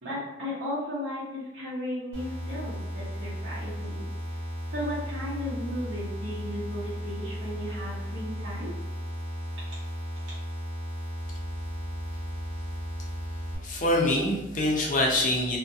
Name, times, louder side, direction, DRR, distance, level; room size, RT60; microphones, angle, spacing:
voice 1, 0.0-4.1 4.7-8.7, left 1 dB, 75° right, -9 dB, 0.8 m, -35 dB
sound 1, 2.1-13.6, equal, 15° right, 1.0 m, -35 dB
voice 2, 13.6-15.6, left 1 dB, 45° left, -2 dB, 0.5 m, -25 dB
2.3 x 2.1 x 2.5 m, 0.92 s
head